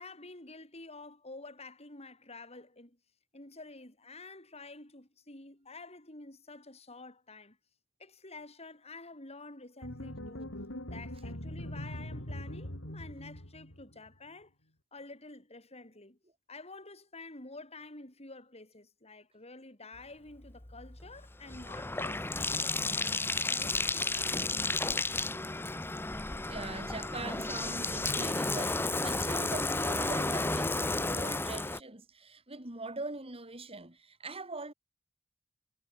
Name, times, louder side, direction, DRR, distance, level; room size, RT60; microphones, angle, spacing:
voice 1, 0.0-3.0 3.3-7.6 8.0-10.6 10.9-14.5 14.9-16.2 16.5-23.2 23.5-24.7, left 3 dB, 30° left, 6.9 m, -49 dB
sound 1, 9.8-14.1, left 1 dB, 75° left, 5.4 m, -42 dB
Bathtub (filling or washing), 20.4-31.8, left 2 dB, 10° left, 0.7 m, -32 dB
voice 2, 26.2-34.7, right 3 dB, 30° right, 3.7 m, -42 dB
head